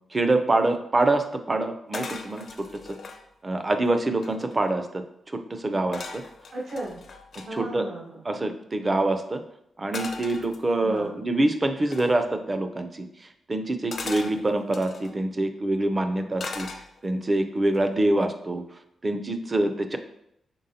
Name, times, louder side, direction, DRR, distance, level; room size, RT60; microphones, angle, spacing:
voice 1, 0.1-2.4 3.4-5.0 5.3-6.2 7.5-7.9 8.2-9.4 9.8-13.1 13.5-16.7 17.0-18.6 19.0-20.0, right 2 dB, 30° right, 7 dB, 0.5 m, -25 dB
sound 1, 1.9-3.2 3.8-3.9 4.1-4.7 5.9-7.5 9.9-11.0 11.9-12.2 13.9-15.1 16.4-17.2 17.7-18.0, left 4 dB, 60° left, 0.6 m, -38 dB
voice 2, 6.5-7.0 7.4-8.2 10.8-11.2, right 1 dB, 70° right, -3 dB, 0.9 m, -35 dB
5.3 x 3.6 x 2.8 m, 0.77 s
cardioid pair, 85°, 0 cm